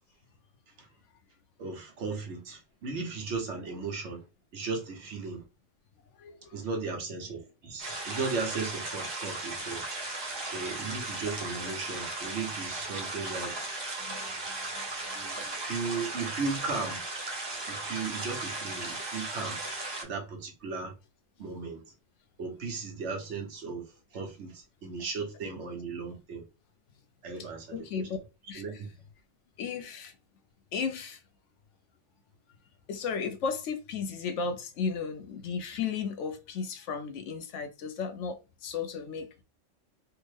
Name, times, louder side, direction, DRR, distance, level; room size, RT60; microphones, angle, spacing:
voice 1, 1.6-4.2 4.5-5.4 6.5-9.9 10.5-13.7 15.1-17.0 17.7-19.6 20.0-20.9 21.4-21.8 22.4-26.4 27.2-28.1 28.5-28.9, right 4 dB, 65° right, 1.1 m, -36 dB
voice 2, 6.2-6.5 14.0-15.6 27.7-28.2 28.5-28.6 29.6-30.1 30.7-31.2 32.9-39.4, left 5 dB, 75° left, 0.9 m, -35 dB
sound 1, 7.8-20.0, right 2 dB, 30° right, 0.6 m, -36 dB
3.4 x 2.1 x 3.2 m
omnidirectional pair, 1.3 m